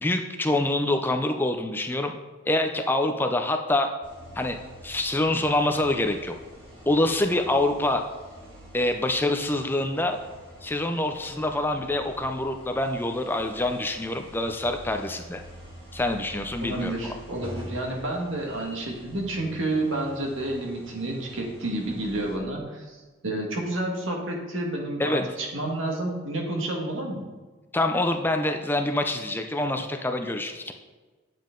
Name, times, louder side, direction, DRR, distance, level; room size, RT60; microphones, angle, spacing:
voice 1, 0.0-2.1 2.5-3.9 4.4-4.6 4.8-6.3 6.9-8.0 8.7-10.2 10.6-15.4 15.9-17.2 25.0-25.3 27.7-30.7, left 1 dB, 10° left, 5 dB, 0.4 m, -26 dB
sound 1, 4.0-22.4, equal, 25° right, 2.2 m, -46 dB
voice 2, 16.6-27.2, right 1 dB, 65° right, 0 dB, 1.7 m, -30 dB
9.2 x 7.3 x 3.8 m, 1.3 s
head